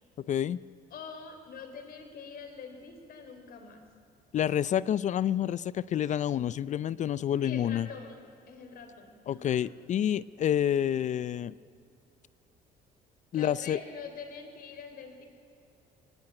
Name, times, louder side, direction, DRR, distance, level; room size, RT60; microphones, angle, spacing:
voice 1, 0.2-0.6 4.3-7.9 9.3-11.6 13.3-13.8, left 10 dB, 45° left, 19 dB, 0.5 m, -28 dB
voice 2, 0.9-3.8 7.4-9.6 13.3-15.3, left 5 dB, 60° left, 6 dB, 3.9 m, -45 dB
22.5 x 18.0 x 8.9 m, 2.6 s
cardioid pair, 110°, 17 cm